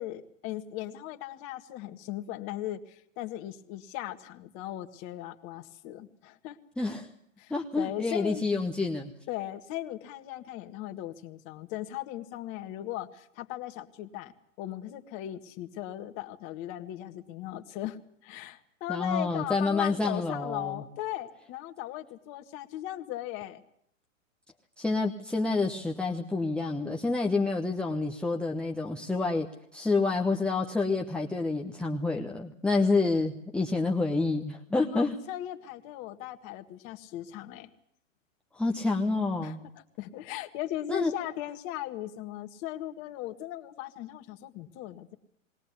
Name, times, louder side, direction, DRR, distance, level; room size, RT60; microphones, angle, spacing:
voice 1, 0.0-6.6 7.4-8.4 9.3-14.3 14.6-23.6 34.9-37.7 39.4-39.6 40.0-45.1, left 13 dB, 35° left, 7 dB, 1.8 m, -38 dB
voice 2, 6.8-7.1 7.5-9.1 18.9-20.8 24.8-29.5 29.7-35.2 38.5-39.6 40.9-41.1, left 3 dB, 5° left, -1 dB, 1.0 m, -28 dB
21.5 x 17.5 x 8.3 m, 0.70 s
hypercardioid pair, 125°, 39 cm